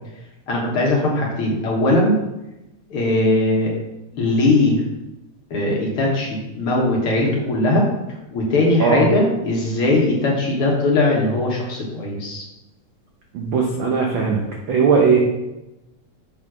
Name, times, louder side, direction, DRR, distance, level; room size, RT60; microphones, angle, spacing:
voice 1, 0.5-2.2 2.9-3.7 4.1-4.8 5.5-7.9 8.3-12.5, left 2 dB, 55° left, -2 dB, 1.9 m, -19 dB
voice 2, 13.3-14.4 14.7-15.2, right 5 dB, 70° right, 0 dB, 1.1 m, -18 dB
7.0 x 4.2 x 6.1 m, 0.96 s
omnidirectional pair, 3.4 m